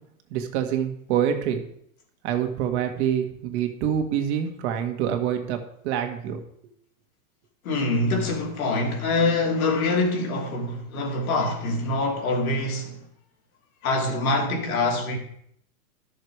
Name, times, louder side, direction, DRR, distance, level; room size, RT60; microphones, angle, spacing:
voice 1, 0.3-1.6 2.2-6.4, right 9 dB, 50° right, 1.8 m, -26 dB
voice 2, 7.6-13.0 13.8-15.2, left 2 dB, 75° left, 2.9 m, -25 dB
12.0 x 6.6 x 4.8 m
supercardioid pair, 140°, 43 cm